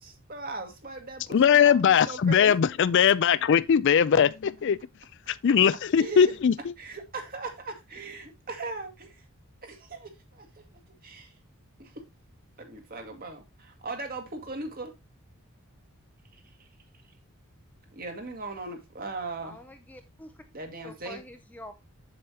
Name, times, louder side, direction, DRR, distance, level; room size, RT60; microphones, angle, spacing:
voice 1, 0.0-2.6 5.9-6.3 6.8-9.2 9.6-11.3 11.8-12.0 12.6-14.9 16.6-16.7 17.9-19.6 20.5-21.2, right 3 dB, 40° right, 1.8 m, -39 dB
voice 2, 1.3-4.8 5.3-6.5, left 7 dB, 55° left, 0.4 m, -20 dB
voice 3, 19.4-20.3 20.8-21.7, left 1 dB, 5° left, 0.6 m, -46 dB
7.8 x 7.1 x 2.9 m
head